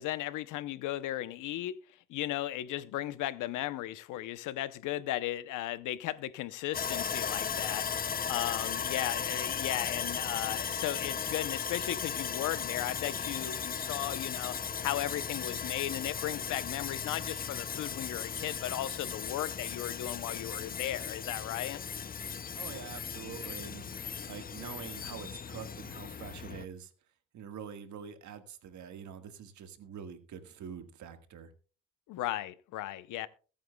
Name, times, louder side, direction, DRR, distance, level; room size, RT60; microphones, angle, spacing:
voice 1, 0.0-1.8 2.1-7.9 8.3-14.6 14.8-21.8 32.1-33.3, left 14 dB, 90° left, 0.8 m, -36 dB
Sawing, 6.7-26.6, left 7 dB, 30° left, 0.6 m, -36 dB
voice 2, 22.5-26.9 27.3-31.5, right 7 dB, 70° right, 1.7 m, -45 dB
21.5 x 9.1 x 2.3 m
cardioid pair, 90°, 30 cm